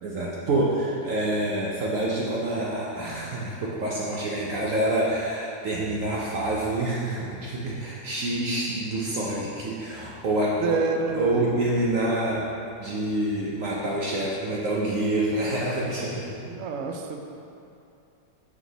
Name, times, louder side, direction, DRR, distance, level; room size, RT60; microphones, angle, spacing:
voice 1, 0.0-10.8 11.1-12.5 12.8-16.3, right 1 dB, 60° right, -4 dB, 0.9 m, -27 dB
voice 2, 10.6-11.6 16.4-17.2, right 4 dB, 90° right, 3 dB, 0.6 m, -28 dB
5.9 x 4.4 x 4.0 m, 2.7 s
omnidirectional pair, 1.9 m